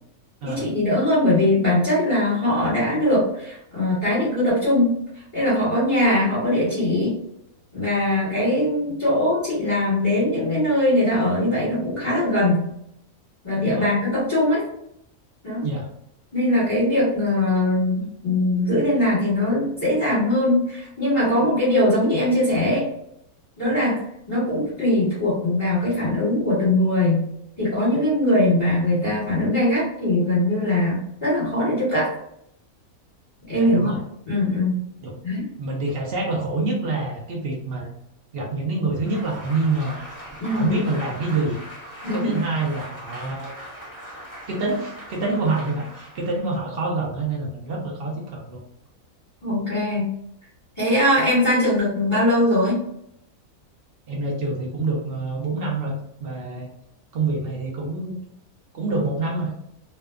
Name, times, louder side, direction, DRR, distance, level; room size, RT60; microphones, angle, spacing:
voice 1, 0.4-5.0 5.3-7.2 7.7-12.7 13.4-14.6 15.4-15.7 16.3-22.9 23.6-24.0 24.3-27.3 27.6-32.1 33.5-33.9 34.3-34.8 35.2-35.4 40.4-40.7 42.0-42.3 49.4-50.1 50.8-52.8, left 1 dB, 20° left, -10 dB, 1.3 m, -21 dB
voice 2, 33.5-34.0 35.0-35.2 35.6-37.9 38.3-40.0 40.5-41.6 42.1-43.6 44.5-48.6 54.1-56.7 57.1-58.2 58.7-59.5, right 3 dB, 55° right, -1 dB, 0.7 m, -26 dB
Applause, 38.9-46.7, equal, 10° right, 1.0 m, -40 dB
2.7 x 2.2 x 2.3 m, 0.76 s
omnidirectional pair, 1.6 m